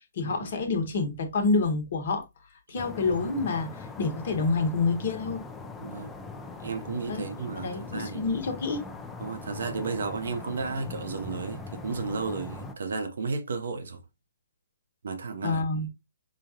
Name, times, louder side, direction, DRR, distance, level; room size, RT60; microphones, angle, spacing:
voice 1, 0.2-2.2 2.7-5.4 7.1-7.3 7.5-8.8 15.4-15.9, left 3 dB, 55° left, 1.1 m, -28 dB
sound 1, 2.8-12.7, left 4 dB, 10° left, 0.5 m, -41 dB
voice 2, 5.8-6.1 6.6-8.2 9.2-14.0 15.0-15.8, right 4 dB, 70° right, 0.8 m, -33 dB
5.0 x 2.3 x 2.8 m
figure-of-eight pair, 130°, 0 cm